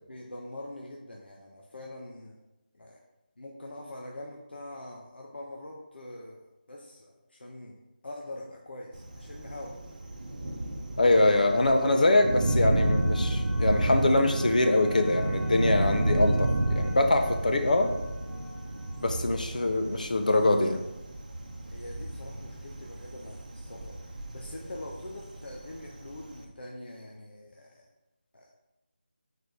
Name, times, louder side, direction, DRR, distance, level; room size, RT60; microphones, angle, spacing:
voice 1, 0.1-2.4 2.7-3.0 3.4-6.4 6.7-7.8 8.0-9.7 17.3-17.5 21.7-27.8 28.3-28.5, left 1 dB, 75° left, -1 dB, 0.9 m, -44 dB
Thunder, 8.9-26.4, right 1 dB, 45° right, 0.8 m, -31 dB
voice 2, 11.0-17.9 19.0-20.8, left 2 dB, 50° left, 6 dB, 0.7 m, -24 dB
sound 1, 11.1-21.9, left 1 dB, 30° left, 1.0 m, -45 dB
6.7 x 4.3 x 3.3 m, 0.98 s
figure-of-eight pair, 175°, 5 cm